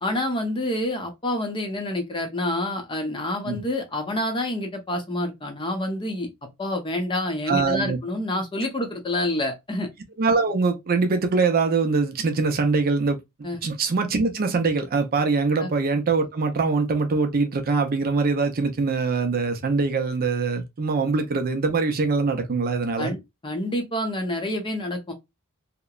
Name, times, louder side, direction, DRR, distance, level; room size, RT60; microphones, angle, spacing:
voice 1, 0.0-6.3 6.6-9.9 13.4-13.6 15.6-15.7 23.0-25.1, left 1 dB, 25° left, 0.6 m, -28 dB
voice 2, 7.5-8.0 10.2-13.2 13.6-23.1, right 4 dB, 45° right, 0.5 m, -23 dB
2.8 x 2.1 x 2.3 m
head